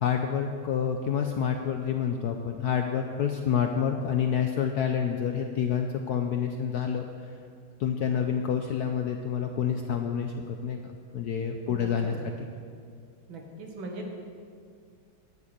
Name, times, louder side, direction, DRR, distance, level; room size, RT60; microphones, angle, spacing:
voice 1, 0.0-7.0 7.8-12.5, left 7 dB, 70° left, 4 dB, 0.9 m, -28 dB
voice 2, 13.3-14.1, right 2 dB, 75° right, 1 dB, 2.2 m, -39 dB
10.5 x 6.5 x 8.6 m, 2.2 s
omnidirectional pair, 2.3 m